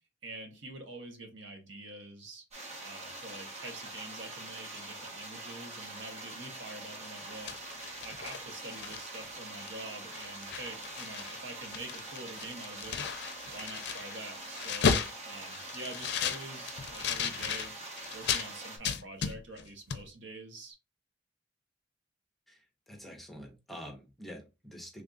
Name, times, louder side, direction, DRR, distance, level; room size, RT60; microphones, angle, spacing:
voice 1, 0.2-2.4 2.8-7.5 8.0-13.0 13.5-17.7 18.1-20.8, right 2 dB, 75° right, 4 dB, 0.8 m, -46 dB
sound 1, 2.5-18.8, right 2 dB, 35° right, 1.0 m, -44 dB
sound 2, 7.3-9.3 9.7-9.8 10.1-11.4 11.6-18.5 18.8-19.7 19.9-20.0, left 6 dB, 65° left, 0.5 m, -34 dB
voice 2, 22.9-25.0, equal, ahead, 2 dB, 0.8 m, -46 dB
3.4 x 2.4 x 3.7 m, 0.28 s
head